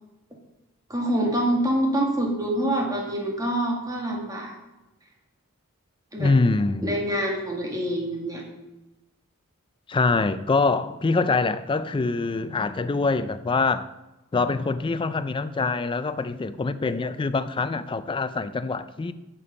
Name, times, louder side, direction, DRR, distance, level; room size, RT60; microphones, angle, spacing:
voice 1, 0.9-4.5 6.1-6.3 6.8-8.4, right 1 dB, 15° right, 1.8 m, -26 dB
voice 2, 6.2-7.0 9.9-13.9 14.3-19.1, left 3 dB, 25° left, 0.3 m, -24 dB
8.9 x 6.9 x 5.4 m
head